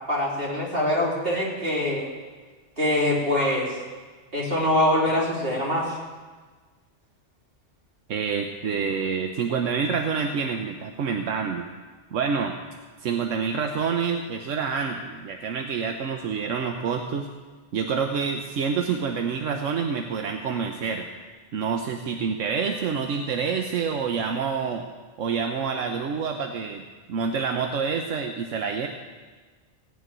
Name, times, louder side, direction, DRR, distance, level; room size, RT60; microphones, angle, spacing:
voice 1, 0.1-2.1 2.8-3.8 4.3-6.0, left 1 dB, 50° right, -4 dB, 3.5 m, -24 dB
voice 2, 8.1-11.7 12.1-12.5 13.0-17.3 17.7-21.1 21.5-24.8 25.2-26.8 27.1-28.9, right 6 dB, 85° right, 4 dB, 1.2 m, -27 dB
16.5 x 6.4 x 9.1 m, 1.4 s
omnidirectional pair, 1.3 m